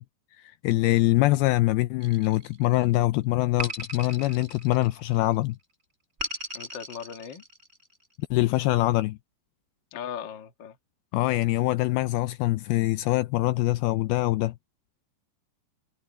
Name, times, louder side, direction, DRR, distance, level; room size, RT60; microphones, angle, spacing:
voice 1, 0.4-5.6 8.3-9.2 11.1-14.5, left 18 dB, 85° left, 2.3 m, -24 dB
sound 1, 2.0-2.8 3.6-5.3 6.2-7.9, equal, 15° right, 3.9 m, -37 dB
voice 2, 6.5-7.4 9.9-10.8, left 8 dB, 60° left, 1.2 m, -38 dB
omnidirectional pair, 4.8 m